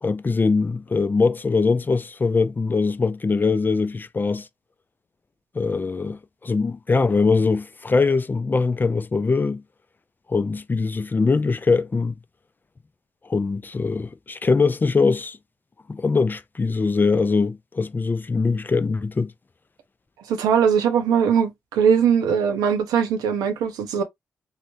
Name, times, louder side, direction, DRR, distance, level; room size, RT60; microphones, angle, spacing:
voice 1, 0.0-4.5 5.6-9.6 10.3-12.1 13.3-15.4 15.9-19.3, left 4 dB, 30° left, 0.3 m, -22 dB
voice 2, 20.3-24.0, right 7 dB, 85° right, 0.6 m, -20 dB
3.1 x 2.1 x 2.7 m
supercardioid pair, 40°, 6 cm